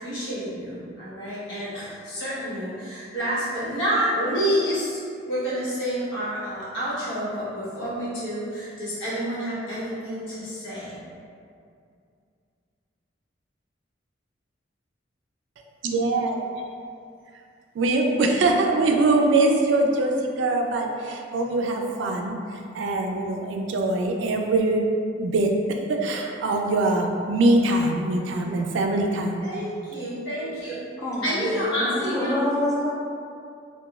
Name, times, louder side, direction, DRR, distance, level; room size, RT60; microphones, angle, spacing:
voice 1, 0.0-5.0 5.3-11.0 29.4-30.8 31.2-32.4, equal, 90° left, -11 dB, 1.1 m, -28 dB
voice 2, 15.8-16.4 17.7-24.8 25.1-29.4, right 2 dB, 75° right, 2 dB, 0.3 m, -23 dB
voice 3, 30.8-32.9, left 1 dB, 20° left, -5 dB, 0.4 m, -27 dB
2.9 x 2.3 x 2.3 m, 2.4 s
head